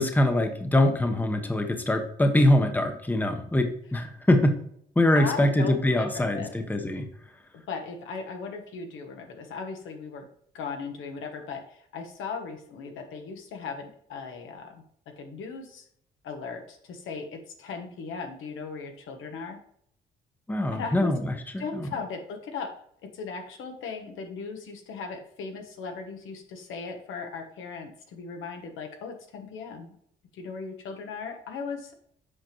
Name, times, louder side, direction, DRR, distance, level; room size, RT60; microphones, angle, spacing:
voice 1, 0.0-4.5 5.0-7.1 20.5-21.9, left 1 dB, 10° left, 6 dB, 0.9 m, -23 dB
voice 2, 5.1-6.5 7.7-10.3 10.5-14.8 15.2-15.8 16.2-19.6 20.7-21.1 21.6-22.7 23.0-29.9 30.3-31.9, left 4 dB, 85° left, 4 dB, 1.2 m, -37 dB
7.8 x 5.1 x 3.0 m, 0.67 s
cardioid pair, 90°, 20 cm